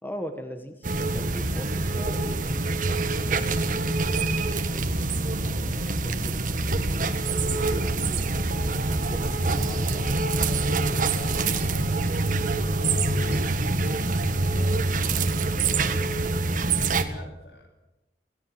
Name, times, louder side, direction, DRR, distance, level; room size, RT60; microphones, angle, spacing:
voice 1, 0.0-3.8 4.7-5.1 5.4-6.4 6.7-8.3 8.5-10.4 10.8-11.0, equal, 10° left, 7 dB, 1.4 m, -41 dB
sound 1, 0.8-17.0, right 2 dB, 50° right, 1.7 m, -25 dB
sound 2, 7.8-14.9, right 4 dB, 65° right, 2.5 m, -41 dB
voice 2, 10.3-13.2 13.5-17.7, left 1 dB, 70° left, 4 dB, 7.5 m, -44 dB
24.0 x 17.5 x 8.0 m, 0.99 s
head